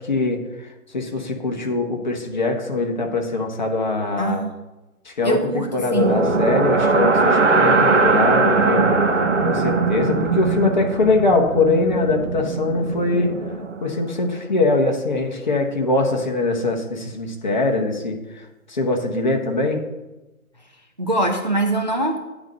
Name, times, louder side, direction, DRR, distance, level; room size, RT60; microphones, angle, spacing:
voice 1, 0.0-4.5 5.0-8.9 9.4-13.3 13.8-19.8, left 3 dB, 30° left, 2 dB, 1.0 m, -22 dB
voice 2, 4.2-4.5 5.2-6.2 21.0-22.2, right 2 dB, 30° right, 4 dB, 0.5 m, -23 dB
sound 1, 5.9-14.0, right 3 dB, 55° right, 1.0 m, -20 dB
9.2 x 4.0 x 6.6 m, 1.1 s
figure-of-eight pair, 150°, 44 cm